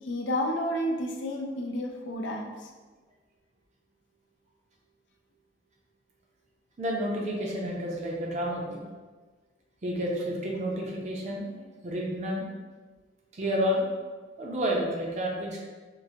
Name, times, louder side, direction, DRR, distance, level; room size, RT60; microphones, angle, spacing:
voice 1, 0.1-2.6, equal, 85° left, 2 dB, 0.5 m, -30 dB
voice 2, 6.8-8.8 9.8-12.5 13.3-13.9 14.4-15.6, equal, 40° right, -2 dB, 0.6 m, -30 dB
4.6 x 2.2 x 2.7 m, 1.3 s
head